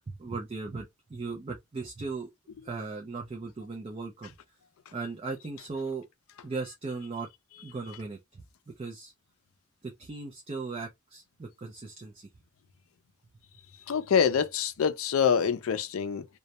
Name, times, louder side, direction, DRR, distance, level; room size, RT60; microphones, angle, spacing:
voice 1, 0.1-2.3 2.6-4.3 4.9-6.1 6.4-7.3 7.6-8.4 8.8-9.1 9.8-12.3, right 4 dB, 30° right, 0.4 m, -37 dB
voice 2, 13.9-16.3, left 7 dB, 90° left, 0.4 m, -25 dB
2.2 x 2.0 x 2.8 m
head